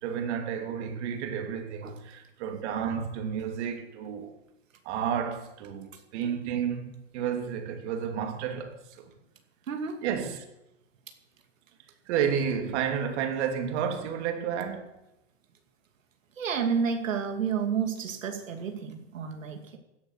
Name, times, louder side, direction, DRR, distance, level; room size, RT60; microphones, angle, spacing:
voice 1, 0.0-4.3 4.8-9.1 10.0-10.4 12.1-15.0, right 8 dB, 60° right, 2.9 m, -31 dB
voice 2, 9.7-10.0 16.4-19.8, right 6 dB, 90° right, 2.6 m, -30 dB
16.0 x 9.9 x 6.5 m
hypercardioid pair, 120°, 38 cm